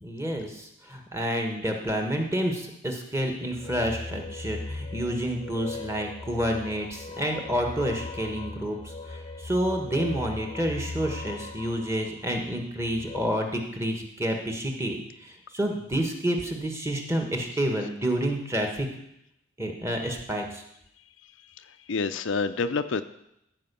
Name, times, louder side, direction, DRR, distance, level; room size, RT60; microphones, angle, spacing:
voice 1, 0.0-18.9 19.6-20.6, equal, 15° right, 3 dB, 1.3 m, -29 dB
sound 1, 3.5-13.2, left 3 dB, 30° left, 0.7 m, -39 dB
voice 2, 21.6-23.0, left 4 dB, 70° left, 10 dB, 0.5 m, -28 dB
14.5 x 5.0 x 6.8 m, 0.81 s
head